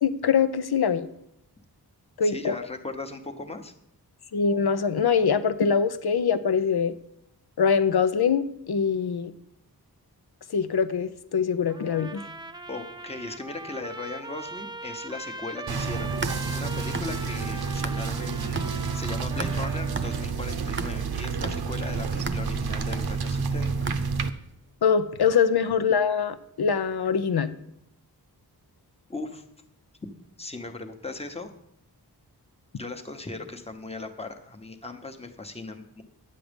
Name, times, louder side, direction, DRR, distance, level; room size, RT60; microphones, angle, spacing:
voice 1, 0.0-1.1 2.2-2.6 4.3-6.9 7.6-9.3 10.5-12.2 24.8-27.5, left 6 dB, 70° left, 12 dB, 0.8 m, -23 dB
voice 2, 2.2-3.7 12.7-23.9 29.1-29.4 30.4-31.5 32.8-36.0, left 3 dB, 15° left, 5 dB, 1.1 m, -38 dB
Trumpet, 11.7-20.3, right 2 dB, 10° right, 0.5 m, -40 dB
sound 1, 15.7-24.3, right 5 dB, 70° right, 0.8 m, -29 dB
sound 2, 16.0-18.2 18.6-24.5, right 3 dB, 30° right, 0.8 m, -37 dB
10.0 x 7.7 x 5.2 m, 0.77 s
wide cardioid pair, 70°, 40 cm